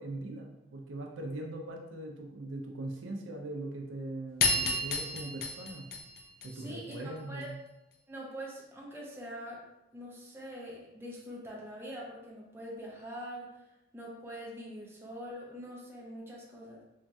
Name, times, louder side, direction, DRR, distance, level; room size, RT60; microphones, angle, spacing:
voice 1, 0.0-5.9 6.4-7.6, right 2 dB, 90° right, 1 dB, 0.5 m, -40 dB
sound 1, 4.4-7.0, left 3 dB, 50° left, 0.4 m, -31 dB
voice 2, 6.5-7.5 8.1-9.6 9.9-13.6 13.9-16.8, equal, 10° right, -4 dB, 0.5 m, -44 dB
3.1 x 2.3 x 2.6 m, 0.91 s
head